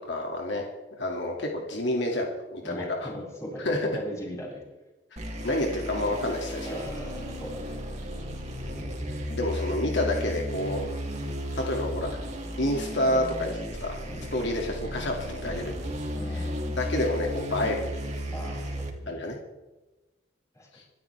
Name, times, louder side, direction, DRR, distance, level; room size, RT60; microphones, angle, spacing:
voice 1, 0.1-0.7 1.0-3.1 3.6-3.9 5.4-6.8 9.3-11.0 11.5-12.2 12.6-13.9 14.3-15.7 16.8-17.9 19.1-19.4 20.7-20.8, left 1 dB, 65° left, 0 dB, 2.4 m, -29 dB
voice 2, 2.6-4.6 6.6-7.8 14.1-14.4 16.1-16.8 18.3-19.2 20.5-20.7, equal, 15° left, -3 dB, 6.8 m, -39 dB
sound 1, 5.2-18.9, equal, 35° right, 3.1 m, -34 dB
27.0 x 13.0 x 3.5 m, 1.1 s
head